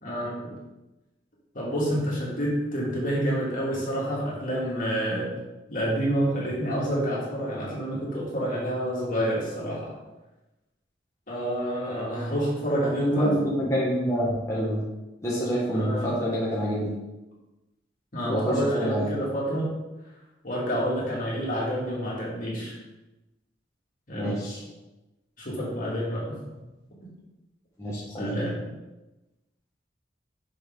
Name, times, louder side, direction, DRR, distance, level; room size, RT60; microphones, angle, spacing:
voice 1, 0.0-0.5 1.5-5.3 5.7-9.9 11.3-13.3 15.7-16.1 18.1-19.7 20.4-22.8 24.1-24.4 25.4-26.4 28.2-28.6, equal, 50° left, -5 dB, 2.6 m, -28 dB
voice 2, 13.0-14.8 15.2-16.9 18.3-19.1 24.1-24.6 27.8-28.3, equal, 15° left, -8 dB, 1.5 m, -27 dB
6.9 x 5.8 x 3.9 m, 1.0 s
head